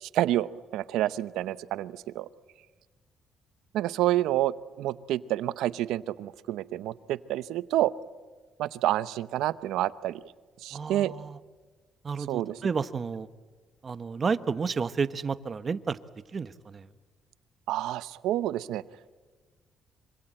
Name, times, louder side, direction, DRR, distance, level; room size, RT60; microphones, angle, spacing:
voice 1, 0.0-2.3 3.7-7.9 8.6-10.2 10.6-11.1 12.3-12.6 17.7-18.8, right 14 dB, 90° right, 16 dB, 0.8 m, -28 dB
voice 2, 10.7-11.4 12.0-13.3 13.8-16.0 16.3-16.9, right 5 dB, 35° right, 14 dB, 1.1 m, -31 dB
25.5 x 25.0 x 8.9 m, 1.4 s
cardioid pair, 100°, 0 cm